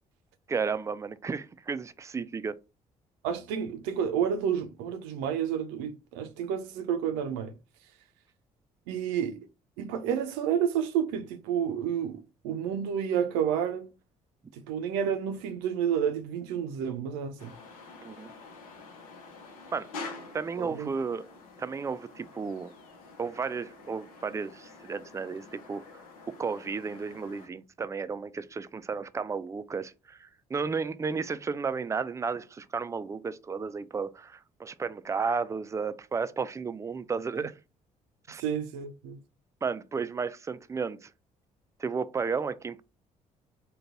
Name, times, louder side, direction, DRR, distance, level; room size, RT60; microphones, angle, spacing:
voice 1, 0.5-2.6 18.0-18.3 19.7-19.9 20.3-21.3 21.6-22.7 23.2-26.0 26.4-37.5 38.3-38.4 39.6-41.1 41.8-42.8, right 5 dB, 15° right, 0.3 m, -33 dB
voice 2, 3.2-7.5 8.9-9.5 9.8-13.9 14.5-17.5 20.6-20.9 37.3-37.5 38.4-39.2, right 8 dB, 75° right, 0.5 m, -30 dB
sound 1, 17.4-27.5, left 3 dB, 85° left, 0.7 m, -47 dB
3.9 x 2.2 x 3.8 m
hypercardioid pair, 45°, 18 cm